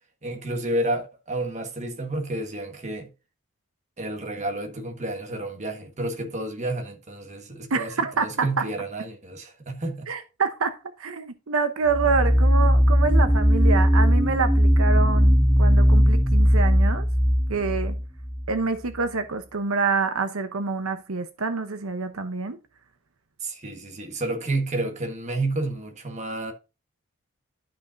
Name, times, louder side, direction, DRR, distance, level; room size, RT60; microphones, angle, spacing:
voice 1, 0.2-3.1 4.0-7.9 8.2-10.1 23.4-26.5, right 2 dB, 35° right, 1.5 m, -30 dB
voice 2, 7.7-8.6 10.1-17.1 17.5-18.0 18.5-22.6, right 4 dB, 90° right, 0.9 m, -27 dB
sound 1, 11.9-18.5, equal, 5° right, 0.3 m, -19 dB
12.0 x 5.4 x 2.6 m
head